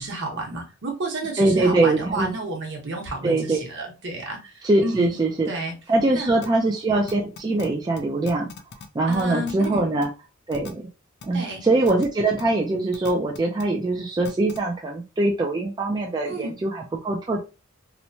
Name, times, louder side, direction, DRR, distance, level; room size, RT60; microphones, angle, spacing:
voice 1, 0.0-5.2 5.5-5.7 6.1-6.3 9.1-9.9 11.3-11.6 16.2-16.5, right 2 dB, 60° right, 0 dB, 1.0 m, -31 dB
voice 2, 1.4-2.3 3.2-3.6 4.6-5.5 5.9-8.5 8.9-10.1 10.5-10.8 11.2-17.4, right 2 dB, 20° right, -1 dB, 0.3 m, -22 dB
sound 1, 6.4-6.5 7.1-7.7 8.0-8.1 8.3-8.9 9.1-9.7 10.0-10.1 10.5-10.7 11.2-11.3 11.8-12.1 12.4-12.5 12.9-13.6 14.2-14.6, left 4 dB, 55° left, 0.4 m, -39 dB
3.0 x 2.1 x 2.6 m, 0.30 s
head